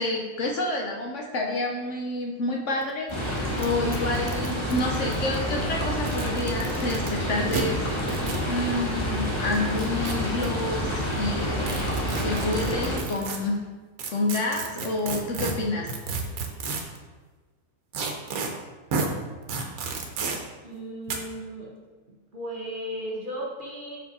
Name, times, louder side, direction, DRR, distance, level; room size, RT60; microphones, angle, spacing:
voice 1, 0.0-11.6 12.2-13.6 14.1-15.9, left 2 dB, 60° left, 0 dB, 0.9 m, -29 dB
sound 1, 2.8-2.9 3.1-3.2 3.6-3.7 3.9-5.4 6.0-7.1 7.5-7.6 8.1-8.4 9.5-10.5 11.6-13.4 14.0-17.0 17.9-18.5 18.9-19.1 19.5-20.4 21.1-21.2, right 4 dB, 70° right, 1.2 m, -31 dB
sound 2, 3.1-13.0, equal, 20° left, 1.1 m, -28 dB
voice 2, 20.6-21.7 22.3-24.0, equal, 35° right, -4 dB, 1.2 m, -35 dB
6.1 x 4.7 x 4.1 m, 1.3 s
omnidirectional pair, 1.6 m